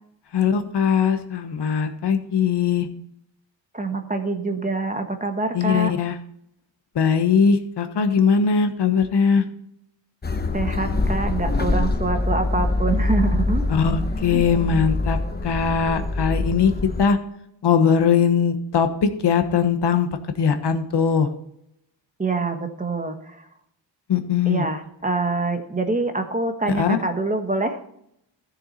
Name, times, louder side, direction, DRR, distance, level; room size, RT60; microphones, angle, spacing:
voice 1, 0.3-2.9 5.5-6.2 6.9-9.4 13.7-16.7 17.0-17.2 17.6-20.1 20.4-21.3 24.1-24.6 26.8-27.0, left 6 dB, 60° left, 8 dB, 1.3 m, -20 dB
voice 2, 3.7-5.9 10.5-13.7 14.3-14.5 22.2-23.5 24.4-27.8, right 3 dB, 15° right, 6 dB, 1.3 m, -25 dB
sound 1, 10.2-17.1, left 2 dB, 20° left, 1.0 m, -24 dB
13.5 x 7.2 x 4.2 m, 0.74 s
cardioid pair, 110°, 45 cm